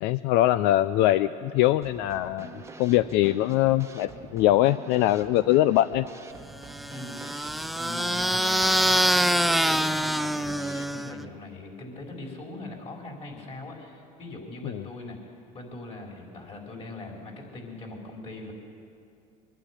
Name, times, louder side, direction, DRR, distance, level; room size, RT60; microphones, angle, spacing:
voice 1, 0.0-6.0 14.6-14.8, left 14 dB, 80° left, 14 dB, 0.5 m, -22 dB
Drum kit / Snare drum, 1.8-10.9, right 4 dB, 15° right, 1.1 m, -46 dB
sound 1, 6.7-11.2, equal, ahead, 0.4 m, -25 dB
voice 2, 6.9-7.2 7.7-15.2 15.5-18.5, left 2 dB, 35° left, 0 dB, 4.9 m, -41 dB
23.0 x 12.0 x 9.9 m, 2.5 s
cardioid pair, 110°, 18 cm